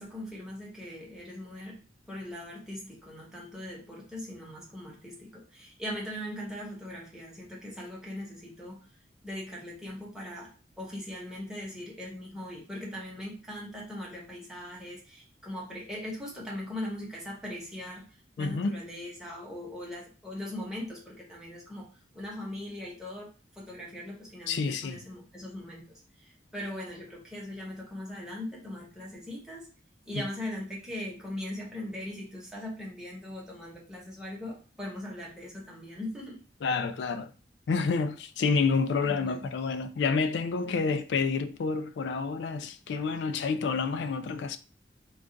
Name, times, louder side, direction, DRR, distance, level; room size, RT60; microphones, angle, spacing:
voice 1, 0.0-1.8 2.1-8.9 9.2-18.1 18.4-29.7 30.1-36.4 39.0-39.4 40.7-40.9, left 1 dB, 5° right, 0.9 m, -40 dB
voice 2, 18.4-18.8 24.5-25.0 30.1-30.2 36.6-37.3 37.7-44.6, left 4 dB, 75° left, 0.3 m, -29 dB
2.3 x 2.3 x 3.8 m
head